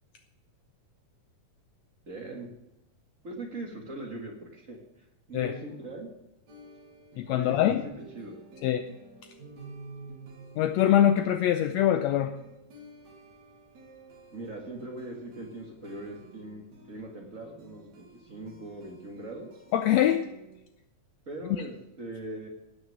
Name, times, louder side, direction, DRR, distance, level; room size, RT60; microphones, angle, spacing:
voice 1, 2.1-2.5 3.2-6.1 7.3-8.4 14.3-19.6 21.3-22.5, right 2 dB, 40° right, 1 dB, 1.1 m, -41 dB
sound 1, 6.5-20.6, right 3 dB, 60° right, 3.4 m, -50 dB
voice 2, 7.2-7.8 8.6-8.8 10.6-12.3 19.7-20.2, left 11 dB, 90° left, 7 dB, 1.5 m, -23 dB
17.5 x 6.3 x 6.3 m, 0.93 s
omnidirectional pair, 3.7 m